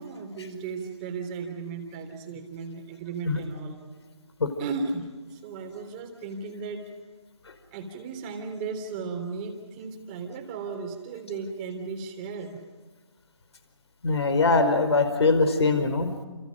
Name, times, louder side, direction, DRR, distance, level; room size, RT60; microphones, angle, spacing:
voice 1, 0.0-3.8 4.6-5.0 5.3-6.9 7.7-12.6, right 4 dB, 15° right, 5 dB, 3.3 m, -35 dB
voice 2, 14.0-16.2, left 3 dB, 55° left, 9 dB, 4.9 m, -22 dB
30.0 x 29.0 x 5.2 m, 1.4 s
figure-of-eight pair, 160°, 16 cm